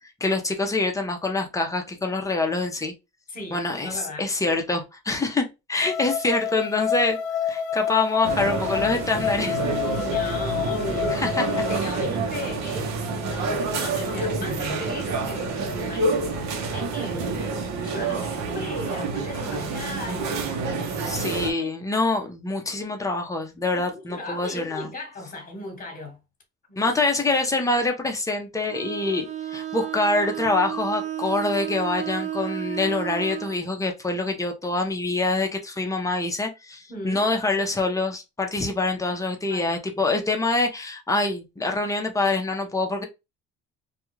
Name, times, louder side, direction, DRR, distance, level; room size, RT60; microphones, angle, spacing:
voice 1, 0.2-2.9 3.5-9.6 11.1-11.7 21.0-24.9 26.8-43.0, left 2 dB, 10° left, 0.6 m, -25 dB
voice 2, 3.3-4.3 9.9-11.3 11.7-12.9 13.2-21.2 21.6-21.8 23.7-26.2 26.7-27.0 36.9-37.2 39.5-39.7, left 1 dB, 30° left, 1.2 m, -37 dB
sound 1, 5.8-11.8, left 8 dB, 75° left, 0.5 m, -28 dB
sound 2, 8.2-21.5, right 3 dB, 65° right, 0.8 m, -28 dB
Bowed string instrument, 28.7-33.6, right 11 dB, 25° right, 0.4 m, -32 dB
2.3 x 2.3 x 3.0 m
cardioid pair, 115°, 30 cm